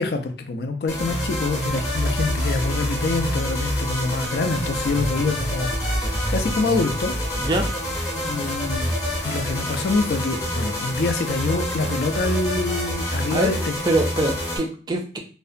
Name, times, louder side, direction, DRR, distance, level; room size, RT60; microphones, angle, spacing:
voice 1, 0.0-7.1 8.1-9.0 9.2-13.7, left 3 dB, 60° left, 6 dB, 0.4 m, -26 dB
sound 1, 0.9-14.6, equal, 20° left, 0.7 m, -26 dB
voice 2, 13.0-13.5 13.8-15.2, right 2 dB, 25° right, 3 dB, 0.3 m, -24 dB
2.5 x 2.1 x 2.4 m, 0.39 s
head